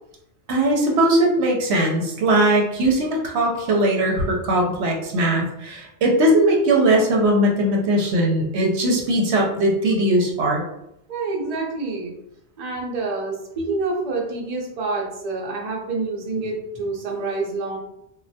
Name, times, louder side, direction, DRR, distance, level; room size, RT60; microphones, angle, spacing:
voice 1, 0.5-10.6, right 1 dB, 75° right, 0 dB, 0.9 m, -19 dB
voice 2, 11.1-12.2 12.6-17.8, right 3 dB, 45° right, -2 dB, 0.6 m, -27 dB
3.2 x 2.3 x 2.6 m, 0.83 s
omnidirectional pair, 1.2 m